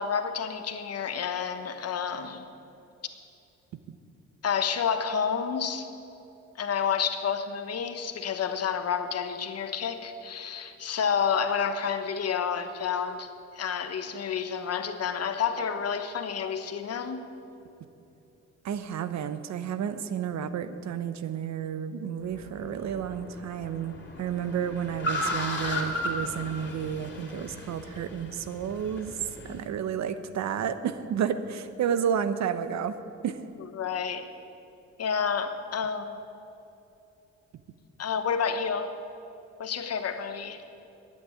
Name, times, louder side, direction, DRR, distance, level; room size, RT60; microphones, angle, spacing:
voice 1, 0.0-2.5 4.4-5.9 6.5-17.2 33.7-34.3 35.0-36.2 38.0-38.9 39.6-40.6, left 7 dB, 55° left, 9 dB, 1.1 m, -29 dB
voice 2, 18.6-29.1 29.4-32.9 33.2-33.4, right 8 dB, 65° right, 12 dB, 0.8 m, -31 dB
Car, 22.2-29.6, left 1 dB, 35° left, 2.8 m, -36 dB
12.0 x 8.6 x 9.2 m, 2.8 s
cardioid pair, 90°, 30 cm